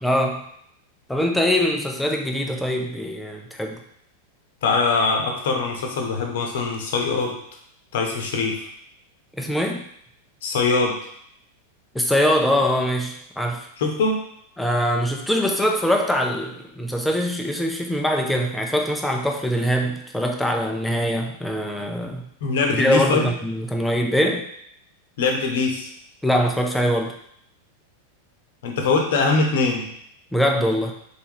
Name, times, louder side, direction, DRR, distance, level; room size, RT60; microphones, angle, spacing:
voice 1, 0.0-0.4 1.1-3.8 9.4-9.8 11.9-13.7 14.6-22.2 22.7-24.5 26.2-27.1 30.3-30.9, equal, 5° left, 1 dB, 0.6 m, -23 dB
voice 2, 4.6-7.4 7.9-8.7 10.4-11.0 13.8-14.2 22.0-22.1 22.4-23.3 25.2-25.9 28.6-29.9, left 4 dB, 55° left, 1 dB, 0.9 m, -22 dB
4.1 x 3.5 x 3.0 m, 0.69 s
figure-of-eight pair, 90°, 0 cm